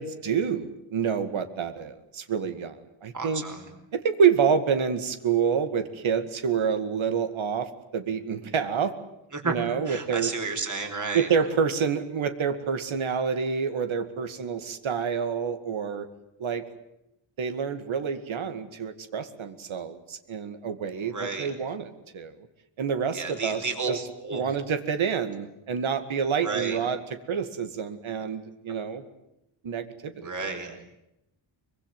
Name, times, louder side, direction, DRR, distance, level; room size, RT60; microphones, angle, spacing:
voice 1, 0.0-3.4 3.9-8.9 9.4-10.3 11.1-16.1 16.4-16.7 17.4-22.5 22.8-27.0 27.3-29.0 29.6-30.3 30.7-30.8, right 6 dB, 70° right, 9 dB, 2.2 m, -28 dB
voice 2, 3.1-3.7 9.3-9.5 9.9-11.3 21.1-21.5 23.1-24.5 26.4-26.8 30.2-30.8, right 4 dB, 35° right, 5 dB, 4.6 m, -32 dB
24.0 x 22.5 x 9.3 m, 0.85 s
wide cardioid pair, 120°, 49 cm